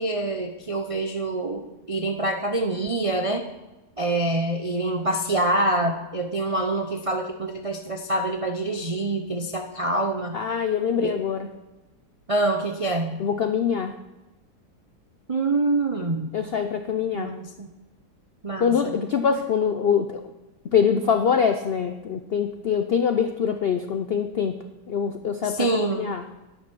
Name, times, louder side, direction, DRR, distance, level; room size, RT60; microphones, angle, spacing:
voice 1, 0.0-3.4 4.0-10.4 11.0-11.2 12.3-13.2 15.3-16.3 17.1-17.7 18.4-19.0 25.4-26.1, right 2 dB, 45° right, 4 dB, 0.4 m, -26 dB
voice 2, 10.3-11.5 13.2-14.0 16.3-17.4 18.6-20.2 20.6-26.2, left 7 dB, 70° left, 8 dB, 0.5 m, -24 dB
10.0 x 10.0 x 6.2 m, 1.1 s
omnidirectional pair, 1.7 m